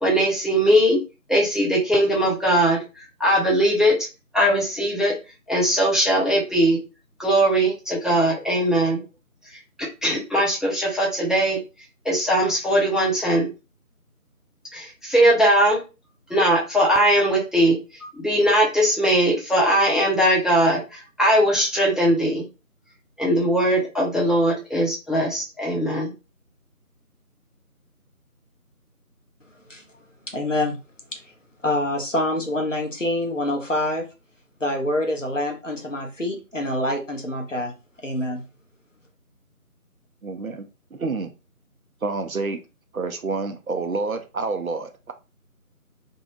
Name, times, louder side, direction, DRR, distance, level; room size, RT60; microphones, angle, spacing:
voice 1, 0.0-1.0 1.3-2.8 3.2-4.0 4.3-5.1 5.5-6.8 7.2-9.0 10.0-11.6 12.0-13.5 14.7-15.8 16.3-22.4 23.2-26.1, right 1 dB, ahead, 0.5 m, -20 dB
voice 2, 30.3-30.8 31.1-31.2 31.6-34.1 34.6-37.7 38.0-38.4, left 1 dB, 55° left, 0.7 m, -26 dB
voice 3, 40.2-41.3 42.0-42.6 42.9-45.1, right 3 dB, 65° right, 0.5 m, -28 dB
2.6 x 2.1 x 2.9 m
figure-of-eight pair, 180°, 45 cm